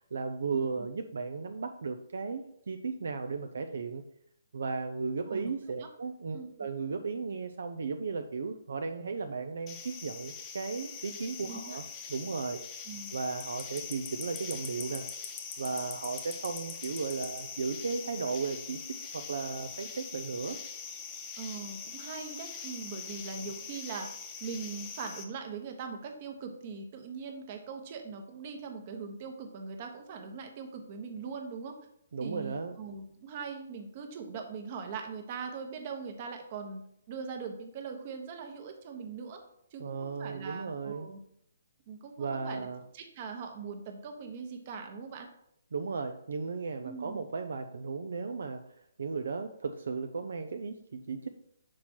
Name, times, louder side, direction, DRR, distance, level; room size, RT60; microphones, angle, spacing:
voice 1, 0.0-4.0 4.5-11.8 12.1-12.6 13.1-15.1 15.6-18.8 19.1-20.6 32.1-32.8 39.8-41.1 42.2-42.8 45.7-48.7 49.0-51.3, right 4 dB, 70° right, 6 dB, 0.5 m, -35 dB
sound 1, 9.7-25.2, left 6 dB, 25° left, 0.8 m, -42 dB
voice 2, 11.5-11.8 12.9-13.1 21.4-24.1 24.4-31.8 32.2-36.8 37.1-39.4 39.7-41.2 41.9-42.7 42.9-45.3 46.8-47.2, right 5 dB, 40° right, 4 dB, 1.1 m, -41 dB
6.1 x 4.4 x 4.3 m, 0.73 s
hypercardioid pair, 145°, 0 cm